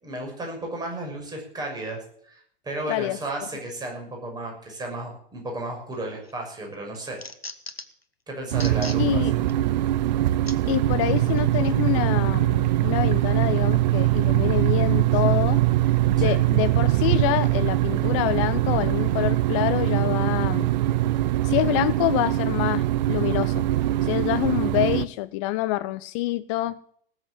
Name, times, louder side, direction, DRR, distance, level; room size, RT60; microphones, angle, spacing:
voice 1, 0.0-7.2 8.3-9.2 16.2-16.4, right 1 dB, 15° right, 6.1 m, -34 dB
sound 1, 5.9-6.3 6.7-8.0 8.5-9.0 9.5-9.6 10.5-10.6 11.4-11.5, left 2 dB, 90° left, 1.4 m, -38 dB
sound 2, 8.5-25.1, right 14 dB, 50° right, 0.7 m, -22 dB
voice 2, 9.0-9.3 10.7-15.6 16.2-20.7 21.4-23.7 24.0-26.8, left 16 dB, 35° left, 0.5 m, -26 dB
18.5 x 8.1 x 7.6 m
figure-of-eight pair, 100°, 29 cm